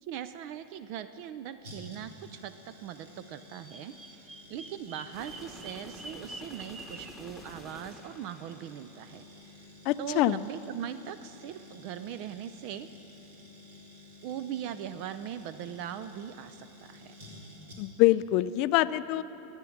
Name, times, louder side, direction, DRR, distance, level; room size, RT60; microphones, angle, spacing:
voice 1, 0.0-9.6 10.0-12.9 14.2-17.1, right 10 dB, 55° right, 12 dB, 0.4 m, -40 dB
sound 1, 1.6-18.1 18.4-18.5, left 2 dB, 80° right, 3.0 m, -52 dB
Bird vocalization bird call bird song, 3.4-7.2, right 2 dB, 20° right, 0.9 m, -46 dB
sound 2, 5.1-9.2, left 1 dB, ahead, 1.3 m, -49 dB
voice 2, 9.9-10.4 17.8-19.2, left 16 dB, 55° left, 15 dB, 0.4 m, -25 dB
14.5 x 9.0 x 7.2 m, 3.0 s
supercardioid pair, 125°, 0 cm